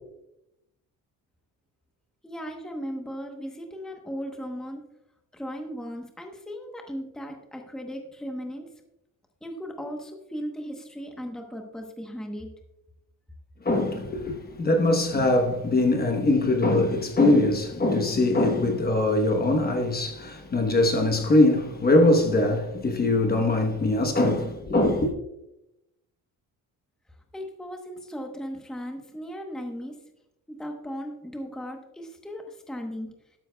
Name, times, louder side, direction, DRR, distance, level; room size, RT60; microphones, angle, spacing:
voice 1, 2.2-4.8 5.3-8.6 9.4-12.5 27.3-30.0 30.5-33.1, equal, ahead, 0.9 m, -37 dB
voice 2, 13.6-25.1, left 2 dB, 25° left, 1.0 m, -22 dB
12.5 x 11.5 x 2.2 m
cardioid pair, 175°, 36 cm